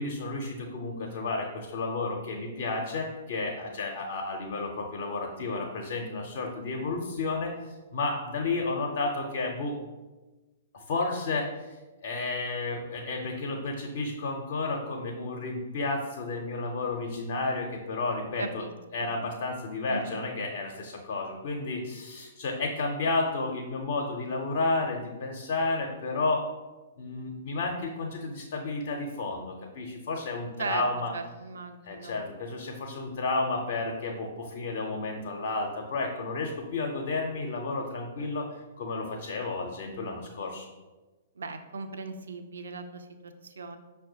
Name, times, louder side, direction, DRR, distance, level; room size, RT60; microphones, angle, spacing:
voice 1, 0.0-9.8 10.7-18.6 18.9-26.4 27.0-31.1 31.9-40.7, left 3 dB, 50° left, 1 dB, 0.5 m, -32 dB
voice 2, 18.4-18.7 19.0-19.1 19.9-20.2 30.6-30.8 31.1-32.2 41.4-43.8, right 4 dB, 65° right, 8 dB, 0.3 m, -38 dB
5.8 x 2.1 x 2.6 m, 1.2 s
figure-of-eight pair, 115°, 0 cm